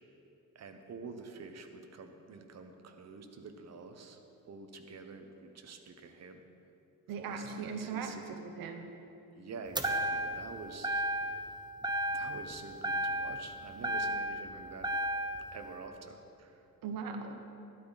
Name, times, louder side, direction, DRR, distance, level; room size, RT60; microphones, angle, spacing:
voice 1, 0.5-4.2 4.5-6.4 7.2-8.4 9.4-11.6 12.1-14.9 15.5-16.6, right 4 dB, 50° right, 5 dB, 1.1 m, -48 dB
voice 2, 7.1-8.9 16.8-17.4, right 5 dB, 85° right, 6 dB, 0.9 m, -39 dB
sound 1, 9.8-10.5 10.8-11.5 11.8-12.5 12.8-14.5 14.8-15.5, right 1 dB, 15° right, 0.8 m, -33 dB
12.5 x 12.0 x 4.1 m, 2.8 s
cardioid pair, 110°, 34 cm